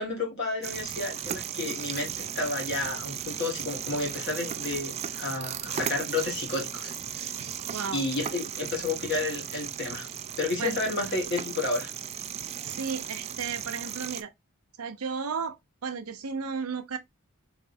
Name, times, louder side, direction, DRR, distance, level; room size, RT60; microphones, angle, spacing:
voice 1, 0.0-7.4 7.9-11.9, left 3 dB, 55° left, 1.9 m, -31 dB
sound 1, 0.6-14.2, right 9 dB, 30° right, 0.3 m, -36 dB
voice 2, 7.4-8.0 10.6-10.8 12.6-14.3 14.8-15.6 15.8-17.0, right 5 dB, 85° right, 0.7 m, -34 dB
4.0 x 3.2 x 2.6 m
head